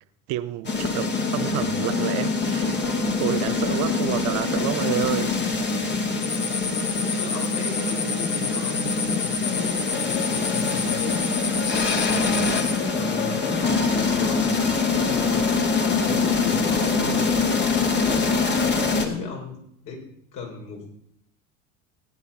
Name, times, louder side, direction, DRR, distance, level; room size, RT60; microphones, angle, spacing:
voice 1, 0.3-5.5, right 16 dB, 50° right, 0.7 m, -29 dB
sound 1, 0.6-19.1, left 4 dB, 30° left, 2.3 m, -24 dB
sound 2, 6.2-12.8, left 6 dB, 85° left, 1.6 m, -29 dB
voice 2, 6.9-11.2 11.7-14.6 15.0-17.3 17.8-20.9, left 4 dB, 55° left, 5.1 m, -36 dB
16.0 x 10.5 x 4.3 m
hypercardioid pair, 75°, 38 cm